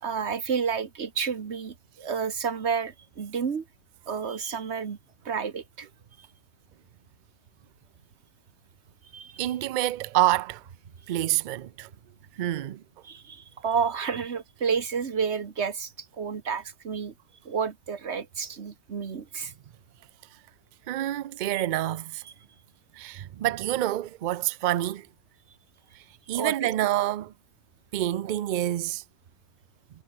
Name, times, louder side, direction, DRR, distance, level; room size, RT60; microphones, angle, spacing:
voice 1, 0.0-3.7 4.1-5.0 5.2-5.9 6.2-6.3 9.1-9.5 13.0-17.1 17.4-19.5 26.3-26.7, right 6 dB, 85° right, 1.7 m, -30 dB
voice 2, 9.4-10.6 11.1-11.9 12.4-12.8 20.9-22.2 23.0-25.1 26.3-27.3 27.9-29.0, right 14 dB, 55° right, 0.6 m, -27 dB
omnidirectional pair, 1.1 m